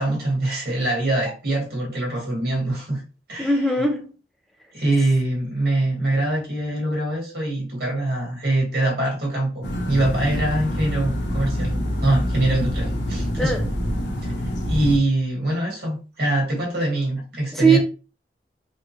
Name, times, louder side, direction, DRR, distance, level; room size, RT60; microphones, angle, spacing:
voice 1, 0.0-3.0 3.3-3.5 4.7-11.7 12.0-13.5 14.2-14.3 14.7-17.8, right 1 dB, 60° right, 1.5 m, -23 dB
voice 2, 3.4-4.1 13.4-13.6 17.5-17.8, right 3 dB, ahead, 0.5 m, -19 dB
sound 1, 9.6-15.0, equal, 85° left, 0.9 m, -26 dB
3.3 x 2.5 x 3.0 m
head